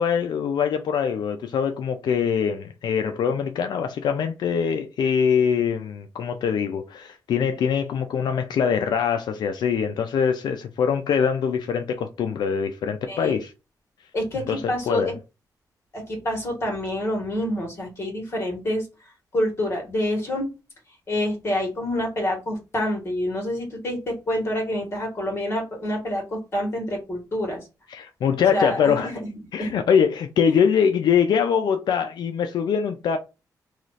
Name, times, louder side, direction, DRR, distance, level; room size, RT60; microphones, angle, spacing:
voice 1, 0.0-13.5 14.5-15.1 27.9-29.1 29.5-33.2, left 7 dB, 80° left, 0.4 m, -23 dB
voice 2, 13.1-13.4 14.1-15.1 15.9-18.8 19.3-20.5 21.1-27.6 28.5-29.7, left 1 dB, 35° left, 1.6 m, -27 dB
3.0 x 2.4 x 4.0 m
wide cardioid pair, 130°, 7 cm